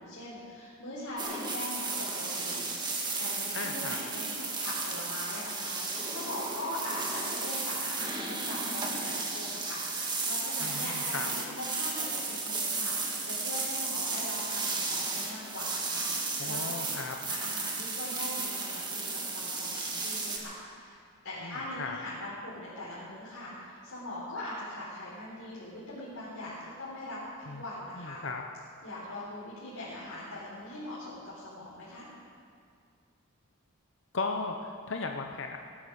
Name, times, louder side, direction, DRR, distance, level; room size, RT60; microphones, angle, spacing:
voice 1, 0.0-16.6 17.3-21.0 21.2-28.2 28.8-32.1, left 1 dB, 80° left, -9 dB, 3.9 m, -41 dB
sound 1, 1.2-20.4, right 3 dB, 20° right, 1.7 m, -34 dB
voice 2, 3.5-4.0 10.6-11.3 16.4-17.2 21.4-22.0 27.5-27.6 28.0-28.4 34.1-35.6, left 3 dB, 55° left, 3 dB, 0.8 m, -36 dB
17.5 x 11.0 x 6.4 m, 2.2 s
head